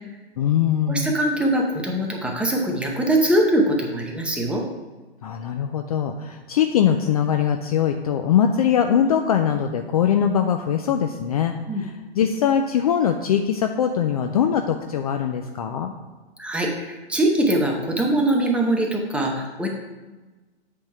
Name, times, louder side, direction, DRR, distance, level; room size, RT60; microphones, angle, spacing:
voice 1, 0.4-1.1 5.2-11.5 11.8-15.9, left 8 dB, 35° left, 5 dB, 0.4 m, -22 dB
voice 2, 0.9-4.6 11.7-11.9 16.4-19.7, right 1 dB, 5° right, 0 dB, 0.7 m, -22 dB
8.1 x 3.6 x 5.7 m, 1.2 s
hypercardioid pair, 130°, 33 cm